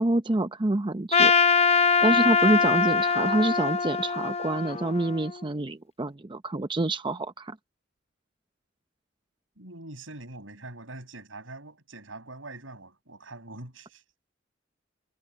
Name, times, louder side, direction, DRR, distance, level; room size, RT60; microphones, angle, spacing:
voice 1, 0.0-1.3 2.0-7.6, right 2 dB, 25° right, 0.7 m, -27 dB
Trumpet, 1.1-5.4, left 5 dB, 35° left, 0.7 m, -23 dB
voice 2, 9.6-14.0, right 2 dB, 85° right, 6.7 m, -43 dB
head